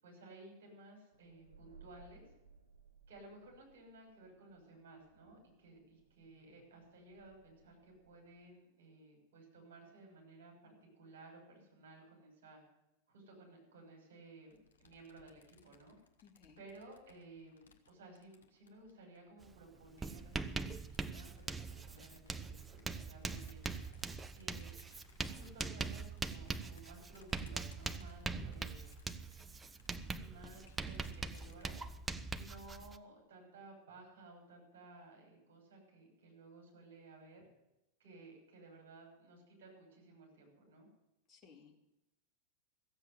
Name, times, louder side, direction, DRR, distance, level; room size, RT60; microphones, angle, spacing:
voice 1, 0.0-2.2 3.1-12.6 13.1-16.0 16.6-23.7 24.3-24.7 25.3-28.9 30.1-31.8 32.3-37.4 38.0-40.9, right 2 dB, 55° right, 0 dB, 6.5 m, -57 dB
sound 1, 1.1-8.5, right 4 dB, 80° right, 1.1 m, -64 dB
sound 2, 14.5-19.3 19.9-31.7, left 7 dB, 65° left, 1.6 m, -65 dB
voice 2, 16.2-16.6 41.3-41.7, left 6 dB, 25° left, 0 dB, 2.9 m, -60 dB
Writing, 19.4-19.6 19.8-33.0, right 4 dB, 15° right, 0.6 m, -42 dB
15.0 x 7.9 x 9.6 m, 0.92 s
figure-of-eight pair, 90°, 0 cm